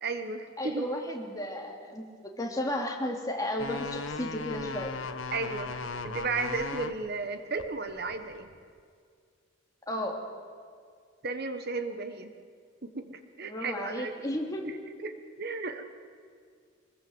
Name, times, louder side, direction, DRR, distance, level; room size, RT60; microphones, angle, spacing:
voice 1, 0.0-0.9 5.3-5.8 6.0-8.5 11.2-12.3 12.8-14.1 15.0-15.1 15.4-15.8, right 3 dB, 50° right, 8 dB, 1.3 m, -34 dB
voice 2, 0.6-4.9 9.9-10.3 13.4-14.8, left 1 dB, 20° left, 0 dB, 2.8 m, -34 dB
sound 1, 3.6-6.9 7.6-8.6, left 4 dB, 75° left, 1.2 m, -37 dB
24.5 x 20.5 x 7.9 m, 2.1 s
head